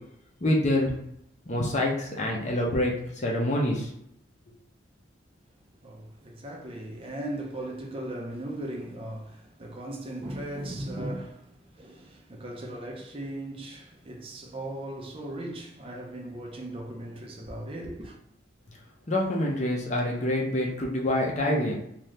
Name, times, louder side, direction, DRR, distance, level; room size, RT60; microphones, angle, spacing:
voice 1, 0.4-1.0 1.5-3.9 19.1-21.8, left 1 dB, 35° left, 0.6 m, -26 dB
voice 2, 5.8-18.2, right 1 dB, 30° right, 0.5 m, -38 dB
2.8 x 2.4 x 3.3 m
head